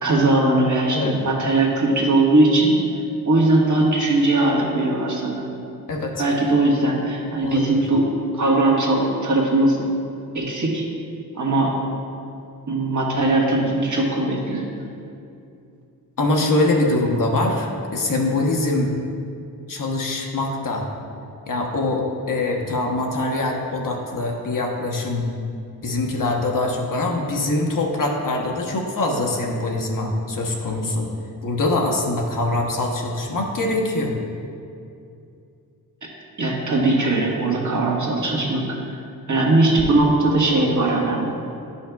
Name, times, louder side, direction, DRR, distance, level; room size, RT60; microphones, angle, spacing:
voice 1, 0.0-2.7 3.2-5.5 6.2-8.1 8.3-9.8 10.3-10.8 11.3-11.7 12.7-14.7 36.0-36.1 36.4-38.9 39.3-41.5, right 2 dB, 50° right, -3 dB, 1.4 m, -20 dB
voice 2, 5.9-6.2 7.4-7.8 16.2-18.9 19.7-20.9 21.5-25.3 25.8-31.1 31.4-34.1, left 2 dB, 55° left, 0 dB, 1.0 m, -23 dB
10.0 x 5.5 x 2.3 m, 2.6 s
cardioid pair, 75°, 38 cm